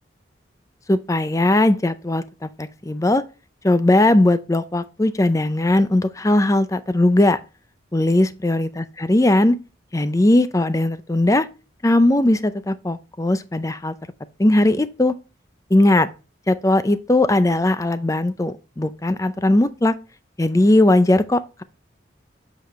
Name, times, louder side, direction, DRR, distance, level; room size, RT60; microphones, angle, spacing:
voice 1, 0.9-3.2 3.6-7.4 7.9-9.6 9.9-11.5 11.8-13.9 14.4-15.1 15.7-16.1 16.5-19.9 20.4-21.6, left 1 dB, 15° left, 0.5 m, -18 dB
8.0 x 4.9 x 3.1 m
head